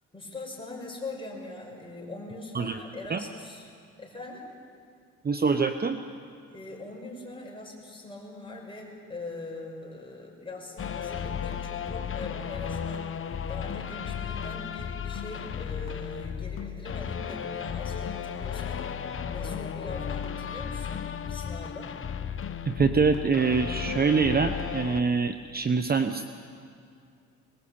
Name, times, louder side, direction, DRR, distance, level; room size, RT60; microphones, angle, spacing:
voice 1, 0.1-3.7 4.0-4.5 6.5-13.1 13.5-18.9 19.3-21.9, left 2 dB, 15° left, -1 dB, 6.3 m, -42 dB
voice 2, 5.2-6.0 22.7-26.2, right 5 dB, 30° right, 8 dB, 0.9 m, -25 dB
sound 1, 10.8-25.0, left 8 dB, 45° left, 1.1 m, -34 dB
22.5 x 19.5 x 8.8 m, 2.3 s
cardioid pair, 90°, 30 cm